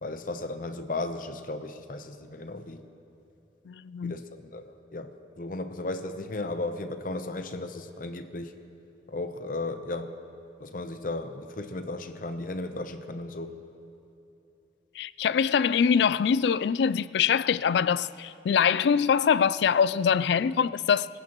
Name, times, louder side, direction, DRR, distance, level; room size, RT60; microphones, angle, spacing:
voice 1, 0.0-2.9 4.0-8.5 9.1-10.1 10.6-13.6, left 2 dB, 45° left, 0.7 m, -35 dB
voice 2, 3.7-4.1 15.0-21.1, left 7 dB, 65° left, 0.3 m, -24 dB
25.0 x 15.5 x 3.0 m
head